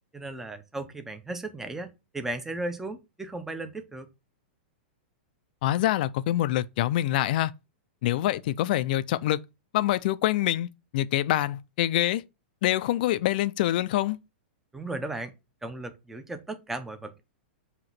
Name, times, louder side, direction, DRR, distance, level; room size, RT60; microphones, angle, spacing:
voice 1, 0.1-4.1 14.7-15.3 15.6-17.2, right 2 dB, 5° right, 0.9 m, -36 dB
voice 2, 5.6-7.5 8.0-9.4 9.7-10.7 10.9-12.2 12.6-14.2, left 14 dB, 55° left, 0.6 m, -25 dB
7.8 x 3.0 x 5.9 m
hypercardioid pair, 145°, 6 cm